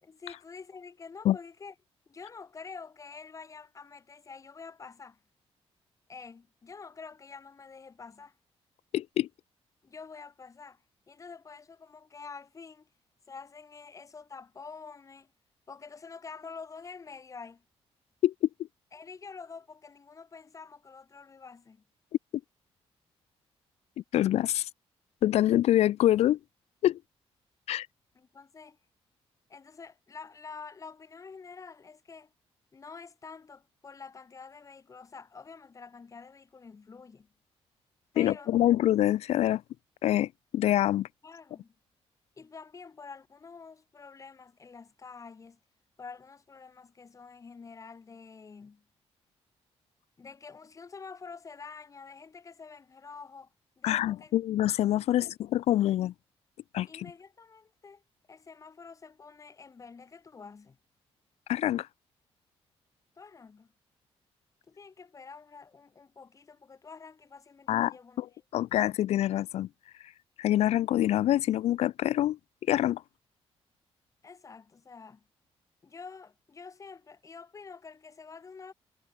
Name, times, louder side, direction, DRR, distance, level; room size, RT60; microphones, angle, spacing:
voice 1, 0.0-1.7 2.1-5.2 6.1-8.4 9.8-12.9 13.3-15.3 15.7-17.6 18.9-21.8 28.1-28.8 29.5-32.3 32.7-37.3 38.1-38.5 41.2-41.7 42.4-45.6 46.0-48.8 50.2-53.5 53.8-54.3 55.1-55.3 56.9-58.0 58.3-60.8 63.2-63.7 64.7-68.2 68.5-68.6 74.2-75.3 75.8-78.7, left 5 dB, 30° left, 4.8 m, -47 dB
voice 2, 8.9-9.3 18.2-18.3 24.1-24.7 25.2-26.4 26.8-27.0 27.7-27.9 38.2-39.6 40.0-41.1 53.8-56.1 56.7-57.1 61.5-61.9 67.7-68.3 68.5-69.7 70.4-72.4 72.7-73.0, left 13 dB, 80° left, 0.5 m, -25 dB
wide cardioid pair, 155°, 11 cm